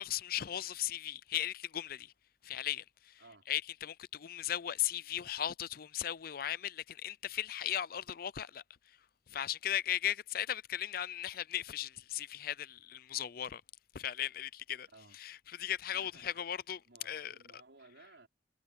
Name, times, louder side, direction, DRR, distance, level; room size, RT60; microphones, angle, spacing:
voice 1, 0.0-2.1 2.4-9.0 9.3-13.6 13.9-17.4, left 11 dB, 55° left, 0.5 m, -37 dB
voice 2, 3.2-3.5 14.9-15.2 15.9-16.4 16.9-18.3, right 3 dB, 85° right, 5.3 m, -59 dB
head